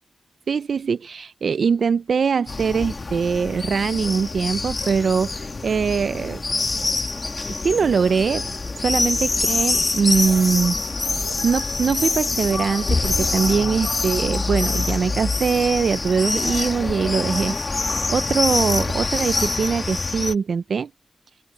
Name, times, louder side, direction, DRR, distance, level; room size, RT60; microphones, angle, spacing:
voice 1, 0.5-6.4 7.6-8.5 8.8-10.8 11.4-20.9, right 6 dB, 75° right, 0.5 m, -22 dB
sound 1, 2.5-20.4, left 3 dB, 45° left, 2.4 m, -25 dB
open air
cardioid pair, 50°, 0 cm